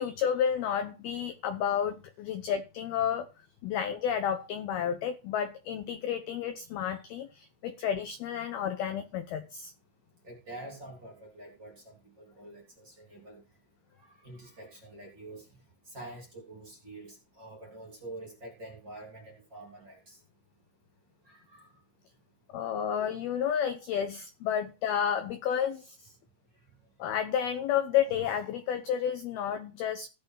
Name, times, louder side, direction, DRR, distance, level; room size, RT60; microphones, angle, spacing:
voice 1, 0.0-3.3 3.6-9.7 22.5-26.0 27.0-30.1, left 8 dB, 75° left, 9 dB, 2.4 m, -31 dB
voice 2, 10.2-13.4 14.0-15.5 15.8-20.2 21.2-21.7, right 2 dB, 25° right, 0 dB, 3.0 m, -47 dB
16.0 x 6.9 x 5.8 m, 0.30 s
omnidirectional pair, 5.7 m